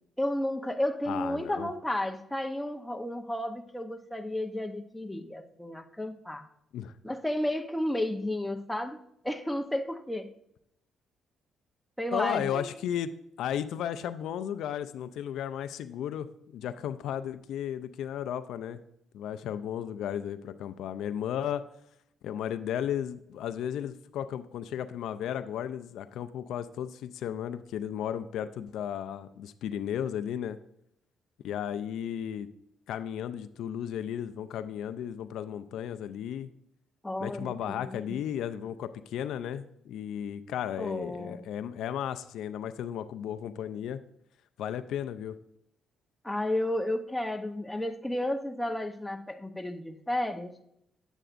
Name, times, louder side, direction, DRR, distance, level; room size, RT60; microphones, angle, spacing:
voice 1, 0.2-6.5 7.0-10.3 12.0-12.8 37.0-38.2 40.8-41.5 46.2-50.5, left 1 dB, 5° left, 5 dB, 0.7 m, -32 dB
voice 2, 1.1-1.7 6.7-6.9 12.1-13.1 13.4-18.8 19.1-21.6 22.2-30.6 31.4-32.5 32.9-36.5 37.2-44.0 44.6-45.4, left 9 dB, 80° left, 12 dB, 0.4 m, -34 dB
8.9 x 7.8 x 2.5 m, 0.76 s
cardioid pair, 90°, 0 cm